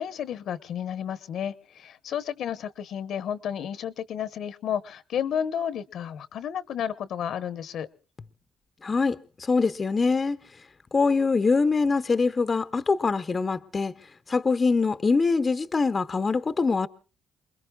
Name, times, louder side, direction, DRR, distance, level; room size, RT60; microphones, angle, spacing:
voice 1, 0.0-7.9, left 9 dB, 70° left, 1.0 m, -32 dB
voice 2, 8.8-10.4 10.9-13.9 14.3-16.9, left 4 dB, 30° left, 0.7 m, -24 dB
28.0 x 21.0 x 2.3 m
cardioid pair, 90°, 0 cm